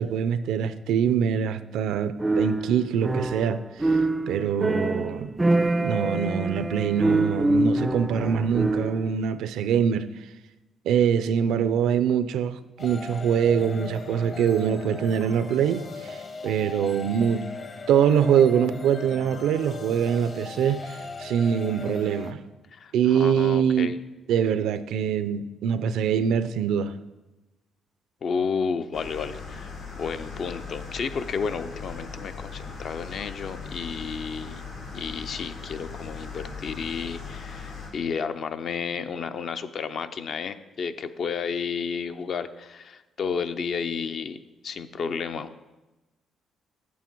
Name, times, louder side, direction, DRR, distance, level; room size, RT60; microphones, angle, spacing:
voice 1, 0.0-4.0 4.3-5.3 5.7-10.1 10.9-17.5 17.9-22.4 22.9-23.9 24.3-26.9, right 8 dB, 85° right, 13 dB, 0.4 m, -24 dB
sound 1, 2.2-9.1, right 2 dB, 15° right, 0.3 m, -25 dB
sound 2, 12.8-22.3, left 4 dB, 45° left, 0.9 m, -39 dB
voice 2, 22.7-24.0 28.2-34.6 34.9-44.4 44.6-45.5, left 6 dB, 60° left, 10 dB, 0.5 m, -32 dB
sound 3, 28.9-37.9, left 5 dB, 85° left, 2.2 m, -39 dB
8.3 x 7.3 x 4.5 m, 1.1 s
cardioid pair, 90°, 0 cm